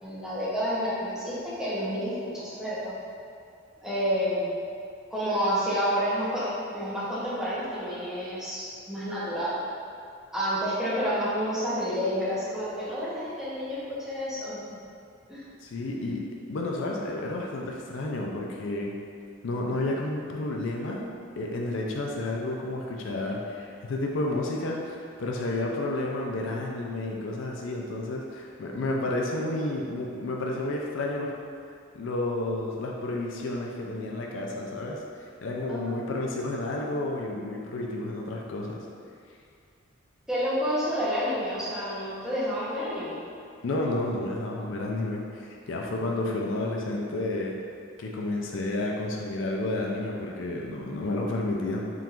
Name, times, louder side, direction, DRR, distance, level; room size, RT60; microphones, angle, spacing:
voice 1, 0.0-3.0 3.8-4.5 5.1-9.6 10.3-14.6 15.3-15.5 35.7-36.0 40.3-43.2, equal, 5° right, -10 dB, 0.8 m, -29 dB
voice 2, 15.6-18.9 19.4-21.1 21.4-31.3 31.9-38.9 43.6-47.6 48.0-51.9, left 2 dB, 70° left, -1 dB, 0.4 m, -31 dB
3.7 x 2.5 x 4.3 m, 2.4 s
head